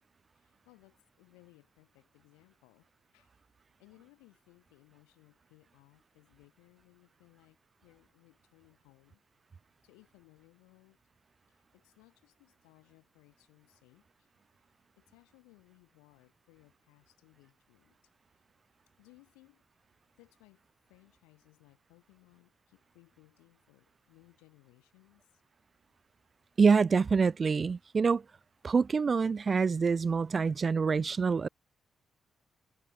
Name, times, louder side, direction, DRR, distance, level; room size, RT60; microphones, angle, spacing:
voice 1, 0.4-3.3 3.8-9.2 9.8-11.0 11.5-14.3 15.0-18.0 19.0-19.6 20.2-20.6 20.9-25.4, left 28 dB, 85° left, 5.6 m, -63 dB
voice 2, 26.6-28.2 28.6-31.5, right 5 dB, 45° right, 0.3 m, -26 dB
hypercardioid pair, 45°, 0 cm